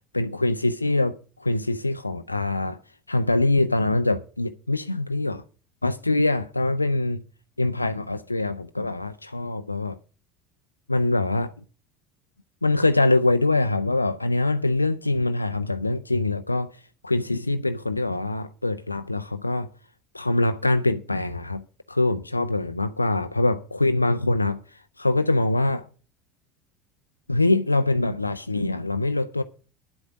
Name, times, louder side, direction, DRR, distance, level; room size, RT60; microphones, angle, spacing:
voice 1, 0.1-2.8 3.1-5.4 5.8-7.2 7.6-10.0 10.9-11.5 12.6-16.7 17.0-19.7 20.1-21.6 21.9-24.6 25.0-25.8 27.3-29.4, left 2 dB, 90° left, 0.5 m, -24 dB
10.5 x 8.1 x 6.0 m
figure-of-eight pair, 70°, 0 cm